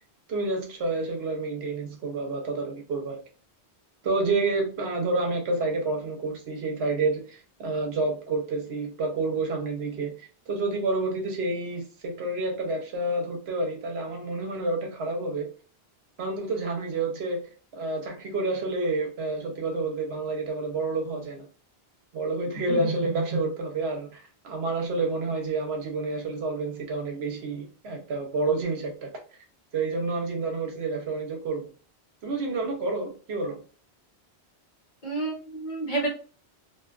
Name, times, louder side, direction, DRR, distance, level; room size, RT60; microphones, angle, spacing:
voice 1, 0.3-3.2 4.0-15.5 16.2-17.4 17.7-21.4 22.1-29.1 29.7-31.7 32.2-33.6, right 3 dB, 70° right, 1.0 m, -29 dB
voice 2, 35.0-36.1, right 2 dB, 50° left, 0.9 m, -30 dB
2.5 x 2.3 x 2.3 m
omnidirectional pair, 1.1 m